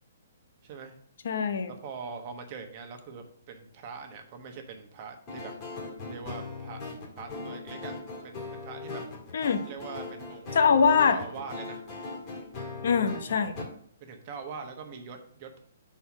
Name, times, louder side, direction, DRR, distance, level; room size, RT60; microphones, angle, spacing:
voice 1, 0.6-0.9 1.7-5.5 6.0-6.8 7.2-7.9 8.2-9.0 9.6-10.6 11.1-11.8 13.3-13.4 14.0-15.6, right 5 dB, 35° right, 4 dB, 1.2 m, -42 dB
voice 2, 1.2-1.7 9.3-9.6 10.5-11.2 12.8-13.5, left 6 dB, 60° left, 9 dB, 0.9 m, -23 dB
sound 1, 5.3-13.6, left 3 dB, 25° left, 1.8 m, -39 dB
5.6 x 4.3 x 6.1 m, 0.62 s
hypercardioid pair, 160°, 0 cm